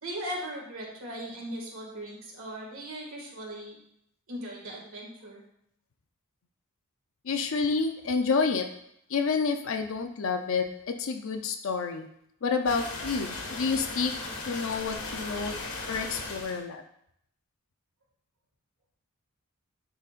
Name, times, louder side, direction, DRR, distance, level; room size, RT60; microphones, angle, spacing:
voice 1, 0.0-3.8 4.3-5.4, equal, 65° right, -2 dB, 2.0 m, -38 dB
voice 2, 7.3-8.7 9.1-10.6 11.0-12.1 12.4-14.1 14.5-15.6 15.9-16.8, left 4 dB, 60° left, 5 dB, 0.5 m, -29 dB
sound 1, 12.7-16.6, left 3 dB, 80° left, 1.4 m, -37 dB
10.5 x 4.0 x 2.4 m, 0.73 s
head